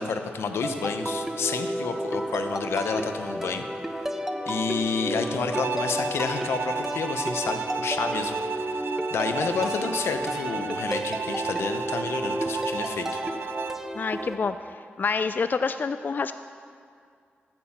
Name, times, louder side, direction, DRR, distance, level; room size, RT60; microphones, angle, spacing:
voice 1, 0.0-3.7 4.5-8.4 8.7-13.2, left 5 dB, 90° left, 7 dB, 0.9 m, -30 dB
sound 1, 0.6-14.3, equal, 10° right, 1.0 m, -32 dB
Bowed string instrument, 5.5-13.9, right 6 dB, 75° right, 0.4 m, -33 dB
voice 2, 14.0-14.6 15.0-16.3, left 5 dB, 50° left, 11 dB, 0.4 m, -27 dB
14.5 x 9.2 x 5.8 m, 2.3 s
cardioid pair, 70°, 4 cm